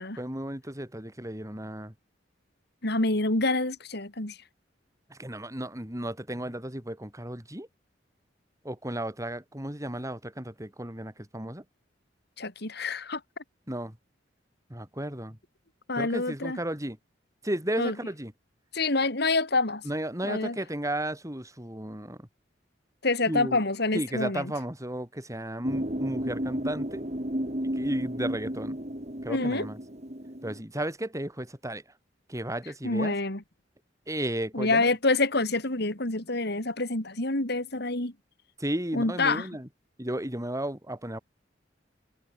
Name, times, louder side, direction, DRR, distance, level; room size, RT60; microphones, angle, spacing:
voice 1, 0.2-1.9 5.1-7.7 8.6-11.6 13.7-13.9 14.7-15.4 16.0-17.0 17.4-18.3 19.8-22.2 23.3-23.6 23.9-27.0 27.6-28.8 29.2-29.8 30.4-31.8 32.3-33.1 34.1-34.9 38.6-39.7 40.0-41.2, right 1 dB, 15° right, 5.6 m, -34 dB
voice 2, 2.8-4.4 12.4-13.2 15.9-16.6 17.8-17.9 18.7-19.8 20.2-20.6 23.0-24.5 29.3-29.7 32.8-33.4 34.5-38.1 38.9-39.5, left 2 dB, 60° left, 3.9 m, -27 dB
sound 1, 25.6-30.6, equal, 40° right, 5.4 m, -33 dB
head